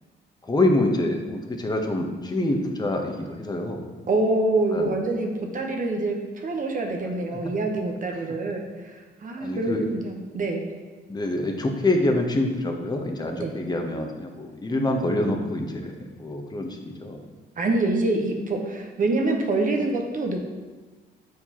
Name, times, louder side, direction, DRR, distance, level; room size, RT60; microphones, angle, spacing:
voice 1, 0.4-3.8 4.7-4.9 8.2-8.4 9.4-9.9 11.1-17.2, left 1 dB, 20° left, 2 dB, 0.9 m, -26 dB
voice 2, 4.1-10.6 13.4-13.5 17.6-20.4, right 2 dB, 45° right, 2 dB, 0.9 m, -26 dB
7.8 x 4.6 x 2.9 m, 1.3 s
cardioid pair, 90°, 20 cm